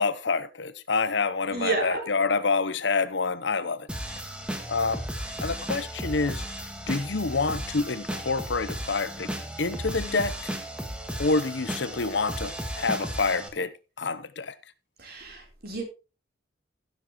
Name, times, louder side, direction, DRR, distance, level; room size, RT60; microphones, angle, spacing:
voice 1, 0.0-3.9 4.7-5.0 5.4-6.5 6.9-9.3 9.6-10.5 11.2-13.7 14.0-14.5, left 4 dB, 65° left, 0.8 m, -27 dB
voice 2, 1.5-2.0 15.0-15.8, right 3 dB, 55° right, 3.9 m, -30 dB
sound 1, 3.9-13.5, equal, 5° right, 1.7 m, -35 dB
16.0 x 7.3 x 3.1 m
head